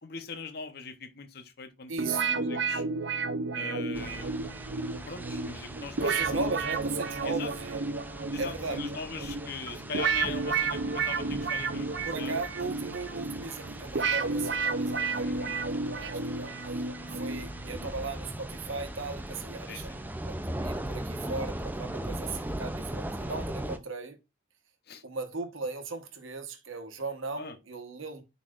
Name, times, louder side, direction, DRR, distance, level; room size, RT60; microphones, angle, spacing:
voice 1, 0.0-2.8 3.5-4.3 5.1-6.4 7.2-7.5 8.3-12.3 15.2-15.6 19.7-19.8 24.9-25.0 27.4-27.6, left 5 dB, 50° left, 0.7 m, -41 dB
voice 2, 1.9-2.3 6.0-7.9 8.4-8.8 12.0-16.5 17.1-24.2 25.0-28.2, right 4 dB, 80° right, 1.1 m, -37 dB
sound 1, 2.0-17.9, right 4 dB, 60° right, 0.5 m, -32 dB
sound 2, 3.9-23.8, right 1 dB, 10° right, 0.4 m, -39 dB
sound 3, 13.4-23.1, equal, 25° left, 4.3 m, -57 dB
9.7 x 4.1 x 2.4 m
head